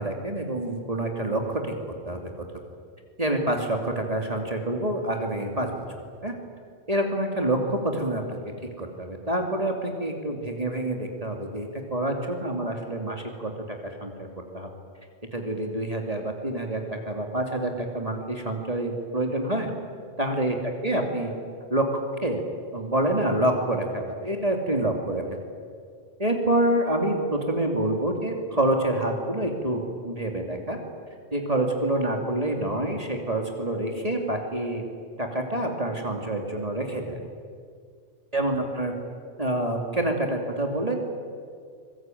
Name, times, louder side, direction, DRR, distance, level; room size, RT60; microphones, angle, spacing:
voice 1, 0.0-1.7 2.0-2.3 3.2-5.9 6.2-6.3 6.9-8.4 8.8-14.1 14.5-14.7 15.3-19.7 20.2-20.6 20.8-21.3 21.7-22.4 22.7-25.4 26.2-30.8 31.3-34.8 35.2-37.2 38.3-38.9 39.4-41.0, right 1 dB, 30° right, 2 dB, 2.8 m, -27 dB
26.0 x 21.0 x 9.2 m, 2.1 s
omnidirectional pair, 1.3 m